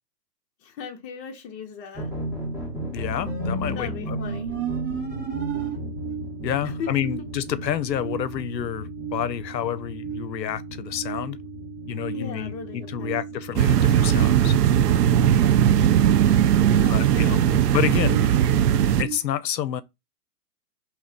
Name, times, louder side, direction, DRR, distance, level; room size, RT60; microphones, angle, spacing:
voice 1, 0.6-2.1 3.7-4.5 6.6-6.9 12.1-13.2 16.5-17.7, left 6 dB, 25° left, 0.7 m, -38 dB
sound 1, 1.9-19.0, equal, 5° right, 0.9 m, -37 dB
voice 2, 2.9-4.2 6.4-11.4 11.9-14.5 16.9-17.4 17.7-18.2 19.0-19.8, left 10 dB, 85° left, 0.6 m, -29 dB
sound 2, 3.3-19.2, right 6 dB, 35° right, 1.8 m, -35 dB
sound 3, 13.6-19.0, right 10 dB, 70° right, 0.6 m, -19 dB
3.0 x 2.9 x 3.7 m
hypercardioid pair, 115°, 50 cm